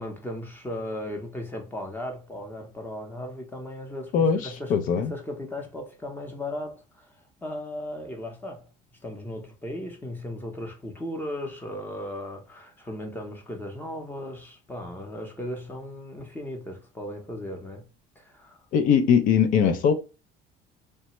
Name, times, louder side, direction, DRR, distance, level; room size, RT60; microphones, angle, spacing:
voice 1, 0.0-7.1 7.4-8.7 9.0-17.8 18.2-18.6, left 1 dB, 10° left, 0.7 m, -36 dB
voice 2, 4.7-5.1 18.7-19.9, left 7 dB, 55° left, 0.4 m, -20 dB
3.2 x 2.1 x 2.9 m
cardioid pair, 135°, 17 cm